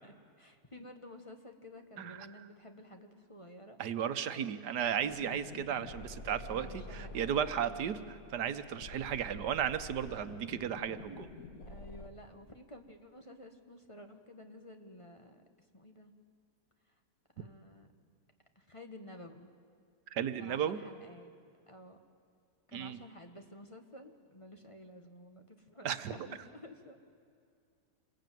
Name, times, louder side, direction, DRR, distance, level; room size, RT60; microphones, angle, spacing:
voice 1, 0.0-3.8 4.3-4.5 6.4-7.3 7.6-8.1 8.7-9.0 11.7-15.4 15.7-16.1 17.4-17.9 18.5-19.5 20.4-21.3 21.7-22.0 22.7-27.0, left 1 dB, 20° left, 5 dB, 1.5 m, -52 dB
voice 2, 2.0-2.5 3.8-11.3 20.1-20.8 22.7-23.0 25.8-26.1, right 9 dB, 90° right, 11 dB, 1.6 m, -35 dB
sound 1, 5.0-12.1, left 3 dB, 60° left, 2.1 m, -48 dB
27.5 x 21.5 x 9.3 m, 2.4 s
omnidirectional pair, 1.7 m